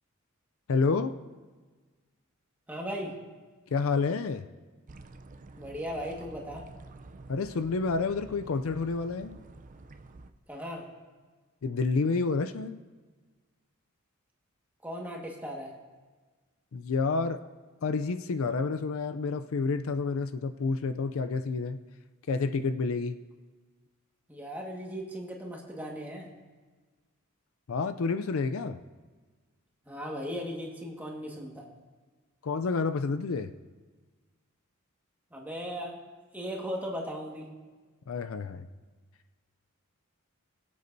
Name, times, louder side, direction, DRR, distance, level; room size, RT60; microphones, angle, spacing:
voice 1, 0.7-1.1 3.7-4.4 7.3-9.4 11.6-12.8 16.7-17.4 17.8-21.8 22.3-23.2 27.7-28.8 32.4-33.5 38.1-38.7, left 4 dB, 70° left, 10 dB, 0.4 m, -29 dB
voice 2, 2.7-3.1 5.6-6.7 10.5-10.9 14.8-15.7 24.3-26.3 29.8-31.7 35.3-36.0 36.3-37.5, equal, 10° right, -1 dB, 1.6 m, -37 dB
sound 1, 4.9-10.3, right 2 dB, 40° right, 0.5 m, -49 dB
22.5 x 8.1 x 2.7 m, 1.4 s
head